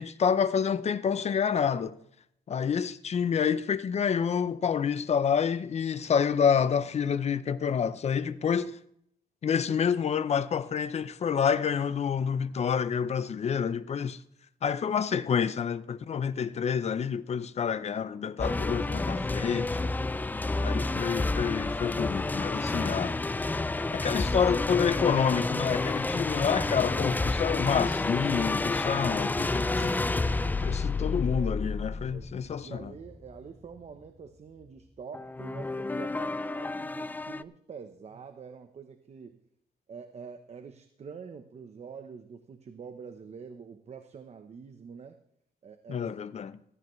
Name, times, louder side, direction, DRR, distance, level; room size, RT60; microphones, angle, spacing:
voice 1, 0.0-2.0 2.5-8.8 9.4-14.2 14.6-19.9 20.6-23.2 23.9-30.0 30.6-32.9 45.9-46.6, left 7 dB, 40° left, 0.7 m, -28 dB
sound 1, 18.4-33.4 35.1-37.4, left 3 dB, 10° left, 0.4 m, -30 dB
voice 2, 31.0-31.7 31.9-32.3 32.6-39.4 39.9-45.2 45.6-46.1, right 6 dB, 40° right, 0.9 m, -46 dB
15.0 x 15.0 x 3.2 m
cardioid pair, 130°, 16 cm